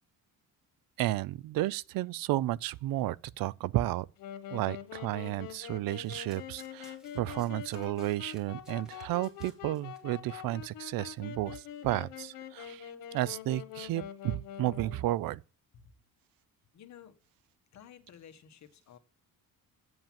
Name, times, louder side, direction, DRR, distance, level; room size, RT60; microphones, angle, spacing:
voice 1, 1.0-4.1 4.5-15.4, right 16 dB, 85° right, 0.5 m, -32 dB
Wind instrument woodwind instrument, 4.2-15.1, left 10 dB, 80° left, 1.6 m, -45 dB
Domestic sounds home sounds, 5.9-10.0 10.3-10.5 10.8-10.9, left 1 dB, ahead, 2.2 m, -60 dB
voice 2, 16.7-17.1 17.7-19.0, left 9 dB, 55° left, 1.4 m, -53 dB
7.9 x 7.3 x 7.5 m
cardioid pair, 150°, 34 cm